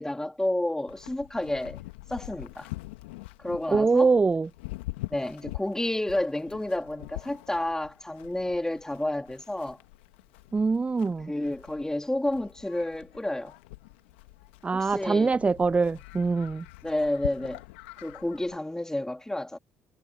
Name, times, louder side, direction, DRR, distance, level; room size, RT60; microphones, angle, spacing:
voice 1, 0.0-1.8 2.1-2.7 3.4-4.1 5.1-9.8 11.3-13.5 14.7-15.3 16.8-17.6 18.0-19.6, left 1 dB, 10° left, 2.6 m, -30 dB
Livestock farm animals working animals, 0.9-18.6, left 19 dB, 80° left, 2.1 m, -44 dB
voice 2, 3.7-4.5 10.5-11.3 14.6-16.7, right 4 dB, 20° right, 0.4 m, -23 dB
hypercardioid pair, 55°, 6 cm